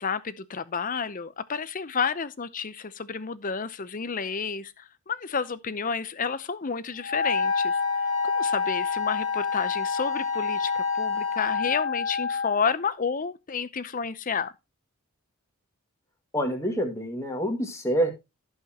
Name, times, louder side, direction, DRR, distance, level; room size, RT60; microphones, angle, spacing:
voice 1, 0.0-7.8 8.2-14.5, left 5 dB, 35° left, 0.7 m, -30 dB
Wind instrument woodwind instrument, 7.0-12.6, left 5 dB, 55° left, 1.9 m, -27 dB
Wind instrument woodwind instrument 2, 7.2-11.7, left 3 dB, 5° right, 3.5 m, -39 dB
voice 2, 16.3-18.1, equal, 15° left, 1.9 m, -27 dB
16.0 x 5.6 x 2.8 m
head